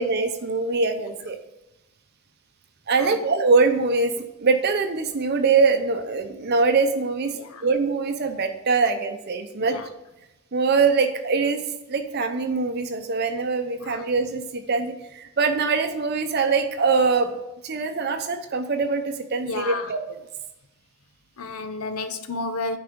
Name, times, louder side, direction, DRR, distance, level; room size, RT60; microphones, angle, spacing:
voice 1, 0.0-1.4 2.9-7.3 7.6-9.8 10.5-11.6 11.9-20.0, right 4 dB, 45° right, 0.6 m, -23 dB
voice 2, 7.3-7.7 9.6-9.9 13.8-14.0 19.4-19.9 21.4-22.8, left 3 dB, 80° left, 0.8 m, -32 dB
9.5 x 4.8 x 5.0 m
head